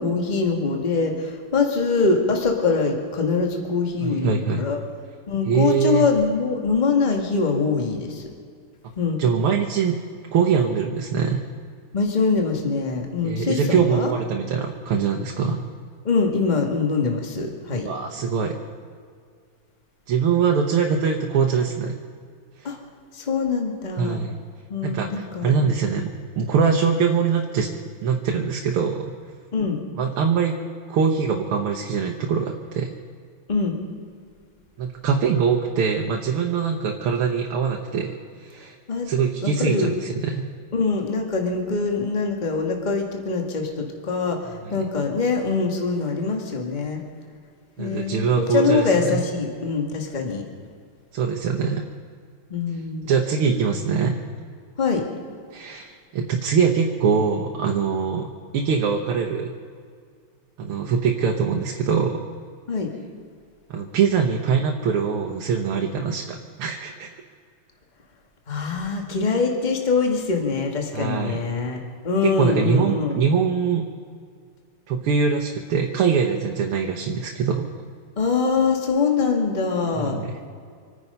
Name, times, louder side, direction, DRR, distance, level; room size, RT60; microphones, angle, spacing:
voice 1, 0.0-4.8 5.3-8.3 9.0-9.2 11.9-14.1 16.0-17.9 22.6-22.8 23.1-24.2 24.7-25.7 29.5-29.8 33.5-33.8 38.9-39.1 39.4-39.9 40.7-47.0 47.8-50.4 52.5-53.1 54.8-55.0 62.7-62.9 68.5-73.2 78.2-80.2, left 4 dB, 20° left, 2 dB, 1.6 m, -23 dB
voice 2, 4.0-4.6 5.5-6.1 9.2-10.0 10.3-11.4 13.2-15.7 17.8-18.6 20.1-21.9 22.6-22.7 24.0-24.3 24.8-27.7 28.0-29.1 30.0-30.6 30.9-32.9 34.8-38.1 38.4-38.8 39.1-40.5 44.7-44.8 47.8-48.8 49.1-49.2 51.1-51.8 53.0-54.1 55.5-58.3 58.5-59.5 60.6-62.2 63.7-67.1 70.9-71.4 72.2-73.8 74.9-77.7 80.0-80.3, right 6 dB, 80° right, 1 dB, 1.9 m, -23 dB
26.0 x 9.8 x 5.4 m, 2.1 s
omnidirectional pair, 2.4 m